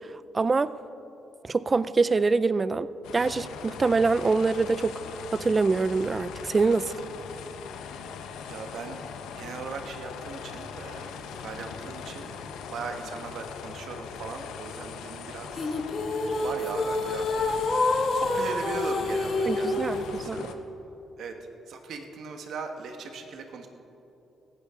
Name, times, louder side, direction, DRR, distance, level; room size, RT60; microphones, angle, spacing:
voice 1, 0.3-0.7 1.4-5.0 5.3-6.9 19.5-20.5, right 4 dB, 30° right, 16 dB, 0.4 m, -25 dB
sound 1, 3.0-20.5, left 6 dB, 90° left, 0.9 m, -40 dB
voice 2, 8.5-9.0 9.4-12.3 12.7-15.8 16.4-20.6 21.2-21.3 21.7-23.7, right 4 dB, 70° right, 5 dB, 1.4 m, -39 dB
sound 2, 15.6-20.1, left 2 dB, 35° left, 1.6 m, -27 dB
17.5 x 14.5 x 3.8 m, 3.0 s
cardioid pair, 90°, 0 cm